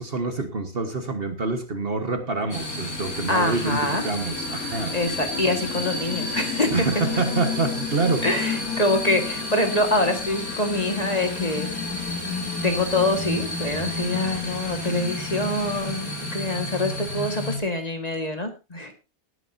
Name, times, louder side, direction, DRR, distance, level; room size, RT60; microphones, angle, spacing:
voice 1, 0.0-4.9 6.7-8.7, right 3 dB, 40° right, 7 dB, 1.5 m, -27 dB
sound 1, 2.5-17.6, left 3 dB, 75° left, 3.6 m, -30 dB
voice 2, 3.3-4.0 4.9-6.9 8.2-11.7 12.6-18.9, left 1 dB, 30° left, 5 dB, 1.8 m, -25 dB
18.5 x 9.8 x 2.7 m, 0.27 s
omnidirectional pair, 1.5 m